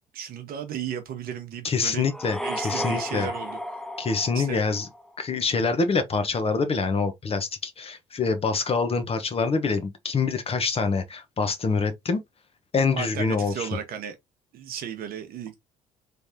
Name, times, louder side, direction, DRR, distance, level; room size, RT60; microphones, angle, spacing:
voice 1, 0.1-2.1 2.4-3.6 4.3-4.6 13.0-14.1 14.5-15.6, right 8 dB, 55° right, 1.0 m, -34 dB
voice 2, 1.6-2.4 2.6-3.3 4.0-4.9 5.2-12.2 12.7-13.7, left 4 dB, 35° left, 0.9 m, -25 dB
sound 1, 2.1-5.1, left 1 dB, ahead, 0.4 m, -33 dB
3.3 x 3.2 x 2.7 m
hypercardioid pair, 60°, 18 cm